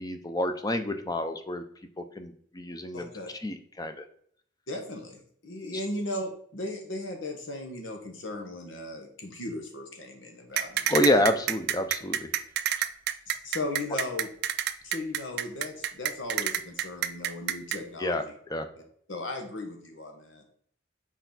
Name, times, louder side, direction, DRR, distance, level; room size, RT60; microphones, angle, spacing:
voice 1, 0.0-1.6 2.0-3.1 3.4-4.0 10.9-12.3 18.0-18.2 18.5-18.7, left 1 dB, 20° left, 8 dB, 0.6 m, -28 dB
voice 2, 2.9-3.3 4.7-10.9 13.3-14.3 14.8-18.3 19.1-20.4, left 2 dB, 90° left, 4 dB, 1.3 m, -37 dB
sound 1, 10.6-17.8, right 11 dB, 60° right, 0.4 m, -28 dB
6.6 x 4.5 x 4.0 m, 0.62 s
head